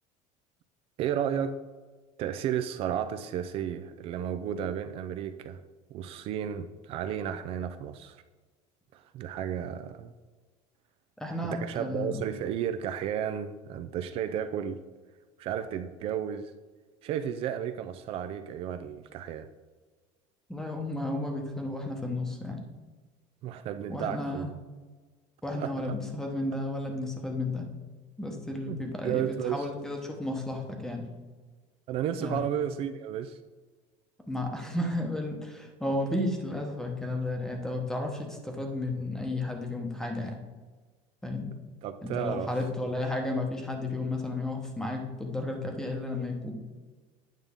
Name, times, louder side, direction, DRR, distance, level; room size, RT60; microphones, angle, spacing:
voice 1, 1.0-1.6 2.2-5.6 5.9-8.2 8.9-10.1 11.4-14.8 15.4-16.5 17.0-19.5 23.4-24.5 25.5-25.7 28.7-29.7 31.9-33.4 41.8-42.5, right 9 dB, 40° right, 10 dB, 0.4 m, -33 dB
voice 2, 11.2-12.2 20.5-22.6 23.9-24.5 25.4-27.7 28.2-31.0 32.2-32.4 34.3-40.4 41.2-41.5 42.0-46.5, left 2 dB, 5° left, 2 dB, 0.9 m, -33 dB
9.1 x 5.2 x 3.6 m, 1.4 s
cardioid pair, 160°, 15 cm